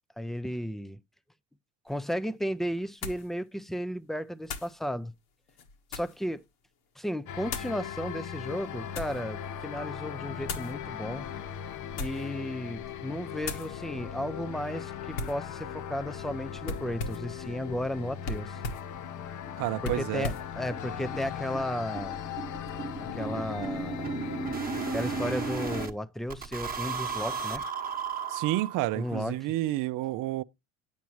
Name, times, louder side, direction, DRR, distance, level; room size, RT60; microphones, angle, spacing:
voice 1, 0.2-1.0 1.9-5.1 5.9-6.4 7.0-11.3 12.0-18.6 19.8-22.2 23.1-24.1 24.9-27.6 28.9-29.4, equal, ahead, 0.4 m, -34 dB
sound 1, 1.9-2.0 3.0-3.3 4.4-4.8 5.5-6.2 7.5-7.8 8.5-9.2 10.4-10.7 11.8-12.3 12.7-13.0 13.4-13.7 15.1-15.4 16.6-17.3 18.2-18.9 19.8-20.5, left 3 dB, 70° left, 1.6 m, -37 dB
Ambient Space Sounding Track, 7.3-25.9, left 9 dB, 50° left, 0.8 m, -39 dB
sound 2, 19.1-19.2 19.5-19.6 19.9-20.0 20.3-20.4 20.7-25.9 26.3-29.1, right 6 dB, 20° right, 1.1 m, -35 dB
voice 2, 19.6-20.3 28.3-30.4, right 16 dB, 55° right, 0.5 m, -30 dB
9.1 x 7.3 x 3.1 m
supercardioid pair, 90°, 39 cm